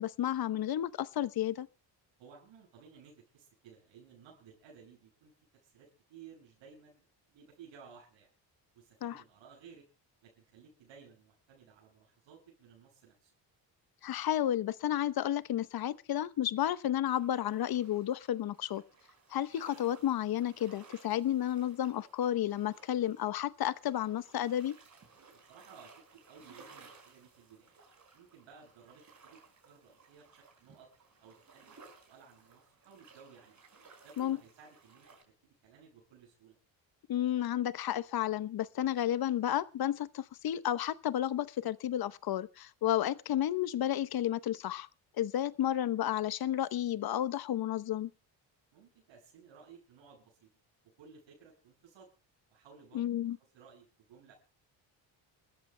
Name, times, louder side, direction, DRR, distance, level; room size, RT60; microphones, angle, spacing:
voice 1, 0.0-1.7 9.0-9.1 14.0-18.8 19.3-24.8 34.2-34.4 37.1-44.9 45.2-48.1 52.9-53.4, left 11 dB, 55° left, 0.9 m, -32 dB
voice 2, 2.2-8.3 8.7-9.9 10.2-13.3 25.3-27.8 28.1-30.9 31.2-33.6 34.0-36.6 48.7-50.5 51.0-52.1 52.5-53.0 53.5-54.3, right 6 dB, 80° right, 6.6 m, -57 dB
sound 1, 17.1-35.2, right 4 dB, 40° right, 5.4 m, -59 dB
28.5 x 13.5 x 2.2 m
cardioid pair, 100°, 45 cm